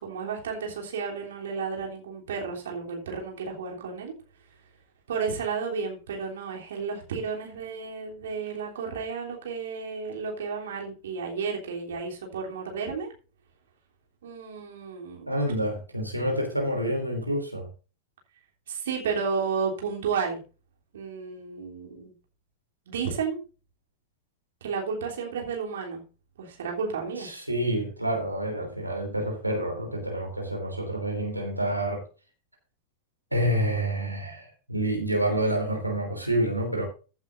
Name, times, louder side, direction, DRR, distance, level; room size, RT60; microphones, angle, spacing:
voice 1, 0.0-4.1 5.1-13.1 14.2-15.3 18.7-20.4 20.9-22.1 22.9-23.4 24.6-26.0 26.4-27.3, right 5 dB, 60° right, 3.3 m, -32 dB
voice 2, 15.3-17.7 27.2-32.0 33.3-36.8, right 1 dB, 85° right, 3.2 m, -28 dB
16.0 x 8.0 x 2.6 m
figure-of-eight pair, 90°, 0 cm